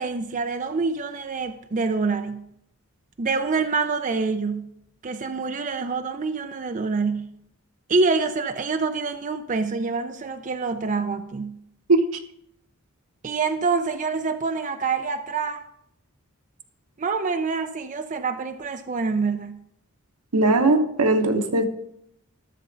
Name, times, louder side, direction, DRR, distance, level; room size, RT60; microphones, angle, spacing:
voice 1, 0.0-2.4 3.2-4.7 5.0-7.3 7.9-11.6 13.2-15.6 17.0-19.6, right 4 dB, 35° right, 8 dB, 0.5 m, -26 dB
voice 2, 20.3-21.7, right 2 dB, 90° right, 6 dB, 1.1 m, -19 dB
13.5 x 6.8 x 3.9 m, 0.76 s
head